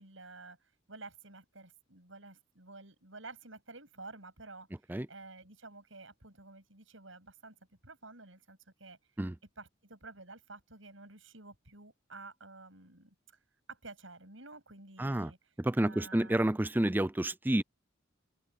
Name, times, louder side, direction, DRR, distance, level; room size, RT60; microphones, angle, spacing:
voice 1, 0.0-4.7 5.1-7.6 7.8-9.0 9.6-13.4 13.7-16.6, right 3 dB, 75° right, 7.8 m, -51 dB
voice 2, 15.0-15.3 15.6-17.6, right 1 dB, 10° right, 0.4 m, -29 dB
open air
head